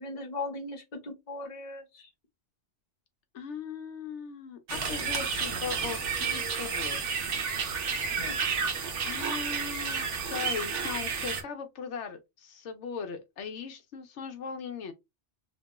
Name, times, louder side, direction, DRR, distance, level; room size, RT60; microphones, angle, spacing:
voice 1, 0.0-2.1 8.2-8.4, left 2 dB, 40° left, 0.9 m, -38 dB
voice 2, 3.3-7.3 9.0-14.9, left 6 dB, 75° left, 0.9 m, -39 dB
sound 1, 4.7-11.4, right 5 dB, 85° right, 1.1 m, -31 dB
2.9 x 2.2 x 2.8 m
omnidirectional pair, 1.2 m